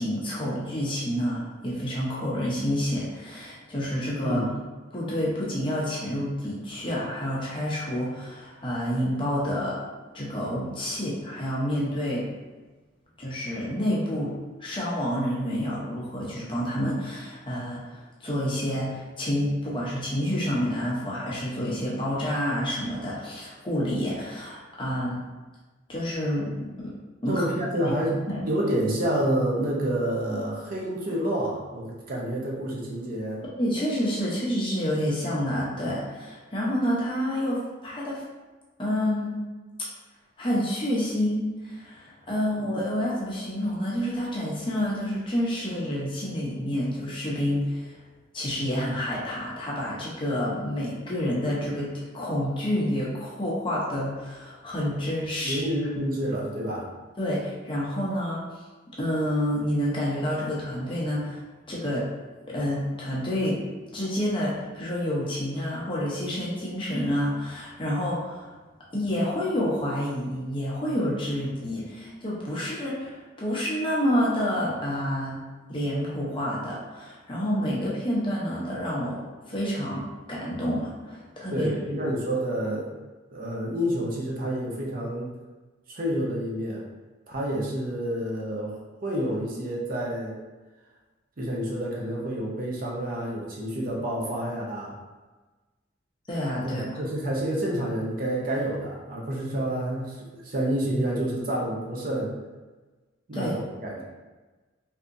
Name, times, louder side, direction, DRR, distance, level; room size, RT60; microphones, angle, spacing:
voice 1, 0.0-4.5 4.9-9.8 10.1-12.3 13.2-25.2 25.9-26.5 26.8-26.9 27.2-27.4 27.9-28.0 28.3-28.4 33.6-38.2 38.8-39.4 40.4-47.9 48.3-55.6 57.2-58.4 59.0-61.4 61.7-62.1 62.5-63.6 63.9-68.5 68.9-75.4 75.7-82.1 96.3-96.9 103.3-103.5, equal, 25° left, -6 dB, 0.7 m, -28 dB
voice 2, 27.3-28.2 28.5-33.4 42.5-42.6 55.4-56.9 81.5-82.9 83.3-85.3 85.9-86.9 87.3-90.4 91.4-95.0 96.6-102.3 103.3-104.0, right 1 dB, 45° right, -3 dB, 0.6 m, -29 dB
3.4 x 2.8 x 2.6 m, 1.3 s
head